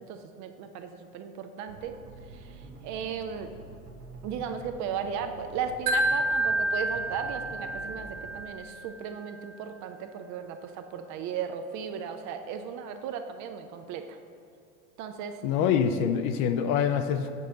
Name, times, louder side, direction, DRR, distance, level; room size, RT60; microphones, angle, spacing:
voice 1, 0.0-1.9 2.3-2.6 2.8-3.5 4.2-14.2 15.0-15.4, right 7 dB, 40° right, 7 dB, 0.5 m, -36 dB
sound 1, 1.7-8.4, right 2 dB, 90° right, 1.2 m, -47 dB
Wind chime, 5.9-9.0, right 1 dB, 60° right, 1.0 m, -29 dB
voice 2, 15.4-17.3, left 7 dB, 45° left, 8 dB, 0.5 m, -25 dB
6.3 x 5.3 x 3.9 m, 2.4 s
hypercardioid pair, 90°, 45 cm